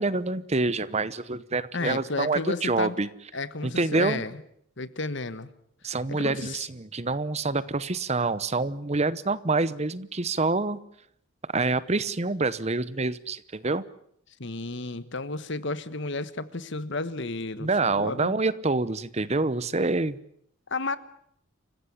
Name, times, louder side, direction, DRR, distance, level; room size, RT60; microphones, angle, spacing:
voice 1, 0.0-3.1 3.6-4.2 5.8-10.8 11.5-13.8 17.6-20.2, right 3 dB, 30° right, 16 dB, 0.9 m, -27 dB
voice 2, 1.7-2.9 3.3-4.4 4.8-5.5 5.9-6.7 14.4-18.4 20.7-21.0, left 3 dB, 60° left, 14 dB, 1.4 m, -32 dB
28.0 x 16.0 x 10.0 m, 0.70 s
head